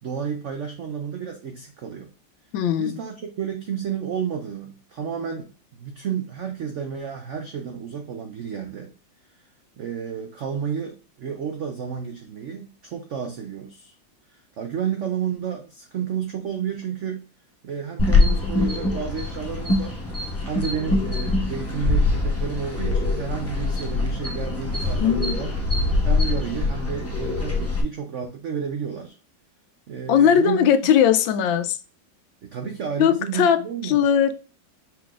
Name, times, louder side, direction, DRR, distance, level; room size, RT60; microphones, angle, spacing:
voice 1, 0.0-2.1 2.8-8.9 9.3-9.5 9.8-13.9 14.3-17.2 17.6-20.0 20.4-25.6 26.0-29.2 29.9-30.9 32.4-34.1, right 7 dB, 75° right, 4 dB, 0.6 m, -31 dB
voice 2, 2.5-3.0 25.0-25.4 30.1-31.8 33.0-34.4, left 8 dB, 85° left, 10 dB, 1.3 m, -19 dB
sound 1, 18.0-27.8, left 3 dB, 20° left, 0.4 m, -23 dB
5.7 x 3.8 x 2.4 m, 0.34 s
omnidirectional pair, 2.0 m